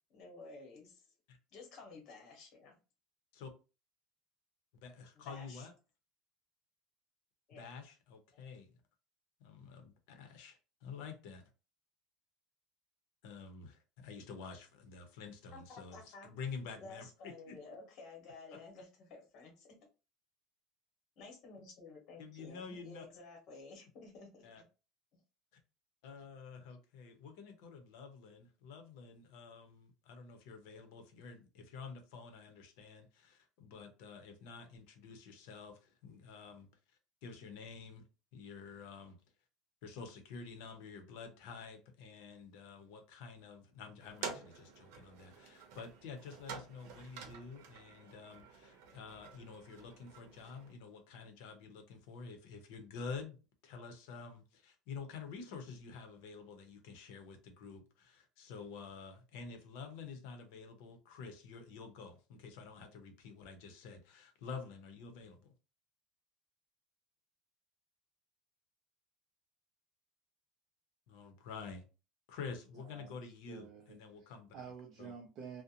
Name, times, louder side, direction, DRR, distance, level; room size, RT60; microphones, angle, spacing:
voice 1, 0.1-1.1 1.5-2.8 5.2-5.7 7.5-7.6 8.3-8.4 15.5-16.3 16.8-19.8 21.2-24.6, left 3 dB, 40° left, 1.0 m, -53 dB
voice 2, 4.8-5.7 7.5-8.7 9.4-11.5 13.2-17.6 22.2-23.0 24.4-24.6 26.0-36.7 37.2-38.0 38.3-39.2 39.8-53.4 53.6-65.5 71.1-71.8 72.3-74.5 75.0-75.1, left 5 dB, 65° left, 0.7 m, -49 dB
sound 1, 44.0-50.7, right 6 dB, 75° right, 0.7 m, -49 dB
voice 3, 72.8-73.2 73.5-75.6, right 6 dB, 40° right, 0.5 m, -50 dB
2.5 x 2.1 x 2.7 m
cardioid pair, 170°, 0 cm